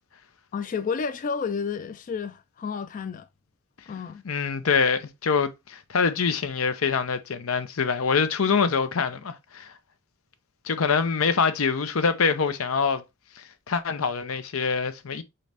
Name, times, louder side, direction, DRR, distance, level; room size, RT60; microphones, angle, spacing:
voice 1, 0.5-3.3 3.9-4.2, left 5 dB, 40° left, 0.3 m, -31 dB
voice 2, 4.2-9.7 10.6-13.0 13.4-15.2, left 5 dB, 85° left, 0.6 m, -25 dB
4.1 x 3.8 x 3.4 m
head